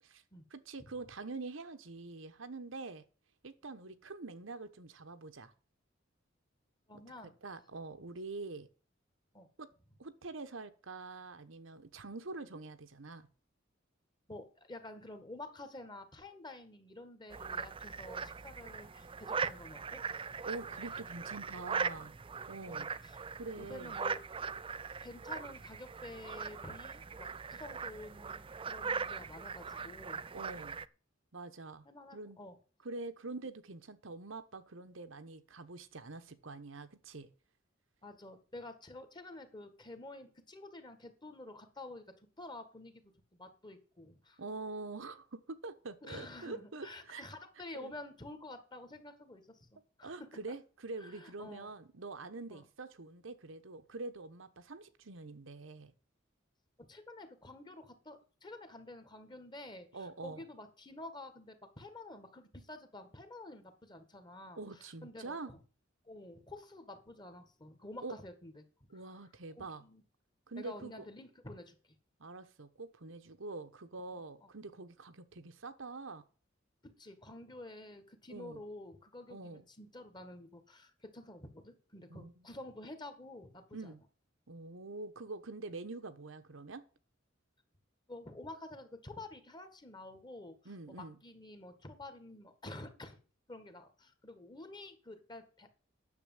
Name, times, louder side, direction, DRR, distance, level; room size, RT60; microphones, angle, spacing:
voice 1, 0.5-3.0 3.4-5.5 6.9-7.0 7.4-8.7 9.6-9.7 10.0-13.3 20.4-22.2 22.5-22.9 23.4-24.0 30.3-30.8 31.3-31.9 32.1-32.4 32.8-37.3 44.4-47.2 47.7-47.9 50.0-55.9 59.9-60.4 64.5-65.5 68.0-68.2 68.9-69.8 70.5-71.1 72.2-76.2 78.3-78.6 79.3-79.6 82.1-82.5 83.7-84.0 84.5-86.8 90.6-91.2, right 3 dB, 75° right, 1.1 m, -45 dB
voice 2, 6.9-7.3 9.3-9.5 14.3-20.0 22.7-22.9 23.6-24.2 25.0-30.2 31.9-32.6 38.0-44.4 46.0-50.3 51.0-51.7 52.5-52.6 56.8-65.6 66.0-68.6 69.6-70.0 70.6-72.0 74.1-74.5 76.8-83.6 88.1-90.6 91.2-93.2 93.5-95.8, left 2 dB, 20° left, 1.8 m, -50 dB
sound 1, 17.3-30.9, right 5 dB, 25° right, 0.4 m, -40 dB
9.9 x 7.1 x 7.3 m
head